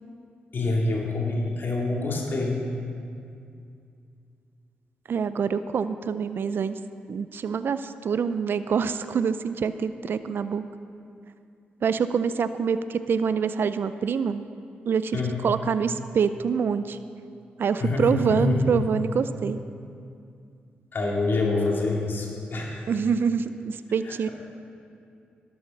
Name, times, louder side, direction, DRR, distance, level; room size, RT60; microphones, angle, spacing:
voice 1, 0.5-2.6 15.1-15.4 17.8-18.7 20.9-22.9 24.0-24.3, left 2 dB, 55° left, -2 dB, 2.5 m, -26 dB
voice 2, 5.1-6.8 7.1-10.6 11.8-14.4 14.9-15.2 15.4-17.0 17.6-19.6 22.9-24.3, right 6 dB, 60° right, 12 dB, 0.4 m, -26 dB
12.0 x 7.1 x 6.4 m, 2.5 s
supercardioid pair, 50°, 4 cm